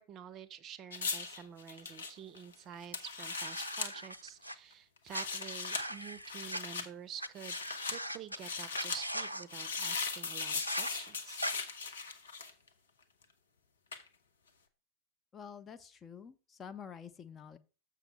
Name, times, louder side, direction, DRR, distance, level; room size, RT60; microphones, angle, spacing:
voice 1, 0.0-7.6 7.8-11.4, right 9 dB, 30° right, 16 dB, 0.6 m, -48 dB
sound 1, 0.9-3.9 5.0-5.8 6.2-6.9 7.4-8.0 8.4-9.0 9.5-12.7 13.9-14.1, left 4 dB, 70° left, 0.9 m, -39 dB
sound 2, 3.2-4.5 5.1-6.6 7.2-7.3 7.5-8.4 8.7-9.4 10.6-10.9 11.4-11.5, equal, 85° right, 0.4 m, -40 dB
voice 2, 15.3-17.6, left 7 dB, 20° left, 9 dB, 0.5 m, -48 dB
7.0 x 6.0 x 4.5 m, 0.34 s
figure-of-eight pair, 90°, 0 cm